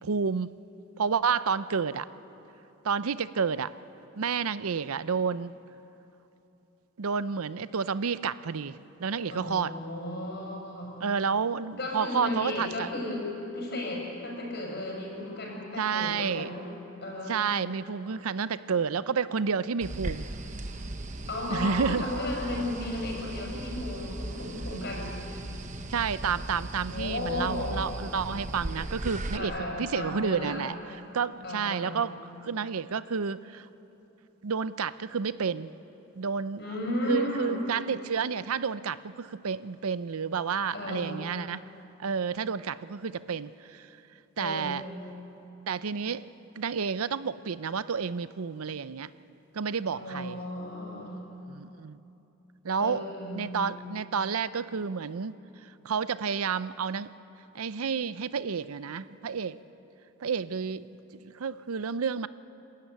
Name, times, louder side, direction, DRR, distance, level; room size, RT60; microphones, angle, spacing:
voice 1, 0.0-0.5 1.0-2.1 2.8-3.7 4.2-5.6 7.0-9.7 11.0-12.9 15.8-16.5 17.3-20.3 21.5-22.1 25.9-32.1 32.4-33.7 34.4-35.7 36.2-36.6 37.1-41.6 42.0-43.9 44.4-44.8 45.7-46.3 46.6-49.1 49.5-50.4 51.5-52.0 52.6-53.0 53.3-55.4 55.8-57.1 57.5-59.6 60.2-62.3, right 6 dB, 85° right, 15 dB, 0.6 m, -30 dB
voice 2, 9.3-11.0 11.8-16.6 17.0-17.8 21.3-25.2 26.9-28.0 29.3-30.7 31.4-32.2 36.6-37.6 40.7-41.3 44.4-44.8 49.9-51.2 52.8-53.6, left 1 dB, 50° left, -1 dB, 6.1 m, -34 dB
sound 1, 19.8-29.4, right 1 dB, 35° right, 1.0 m, -37 dB
30.0 x 13.5 x 9.3 m, 3.0 s
head